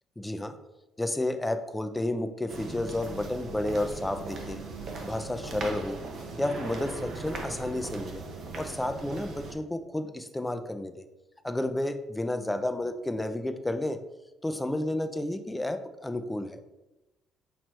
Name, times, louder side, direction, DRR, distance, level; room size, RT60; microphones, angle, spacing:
voice 1, 0.2-0.6 1.0-4.6 5.0-6.0 6.4-8.2 8.6-11.0 11.4-14.0 14.4-16.6, left 1 dB, 10° left, 9 dB, 0.4 m, -31 dB
sound 1, 2.5-9.5, right 3 dB, 55° right, 0.8 m, -39 dB
6.0 x 3.0 x 2.9 m, 1.0 s
cardioid pair, 115°, 0 cm